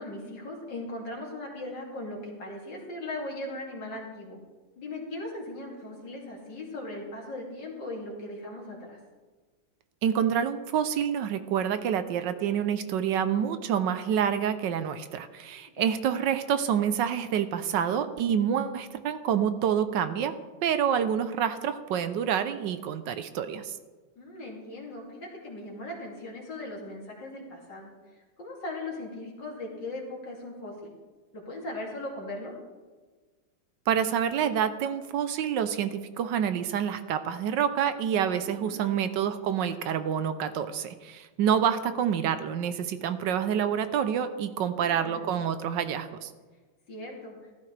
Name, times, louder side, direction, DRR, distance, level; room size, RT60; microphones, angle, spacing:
voice 1, 0.0-4.4 4.8-9.0 15.5-15.9 24.2-27.9 28.4-30.9 31.3-32.5 38.4-39.1 44.7-45.3 46.9-47.4, left 2 dB, 70° left, -2 dB, 3.1 m, -39 dB
voice 2, 10.0-20.3 20.6-23.8 33.9-46.3, right 8 dB, 75° right, 11 dB, 1.3 m, -27 dB
15.0 x 12.5 x 3.3 m, 1.3 s
omnidirectional pair, 2.1 m